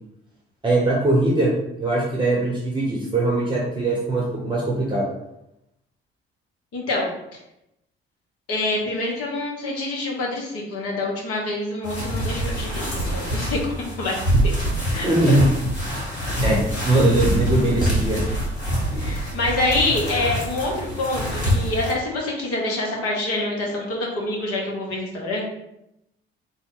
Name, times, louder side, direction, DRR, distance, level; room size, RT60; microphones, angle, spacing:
voice 1, 0.6-1.5 1.8-5.1 15.0-15.4 16.4-16.6 16.8-18.2, right 2 dB, 15° right, -4 dB, 0.9 m, -20 dB
voice 2, 6.7-7.1 8.5-13.6 14.0-14.1 14.4-14.6 14.9-15.4 19.0-25.5, left 2 dB, 50° left, -2 dB, 1.1 m, -26 dB
sound 1, 11.8-21.9, equal, 85° left, 1.0 m, -25 dB
3.4 x 2.1 x 3.9 m, 0.85 s
figure-of-eight pair, 50°, 31 cm